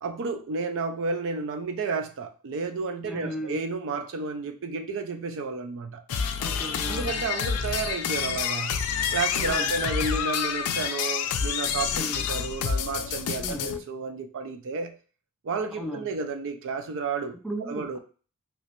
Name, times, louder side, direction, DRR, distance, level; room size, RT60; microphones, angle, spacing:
voice 1, 0.0-6.0 6.9-8.8 9.1-14.9 15.4-17.4 17.7-18.0, right 4 dB, 60° right, 0.4 m, -31 dB
voice 2, 3.0-3.6 6.4-7.2 9.3-9.7 11.9-12.3 13.4-13.7 15.7-16.1 17.4-18.0, equal, ahead, 0.5 m, -36 dB
sound 1, 6.1-13.8, left 7 dB, 75° left, 0.4 m, -28 dB
3.1 x 3.0 x 2.9 m
head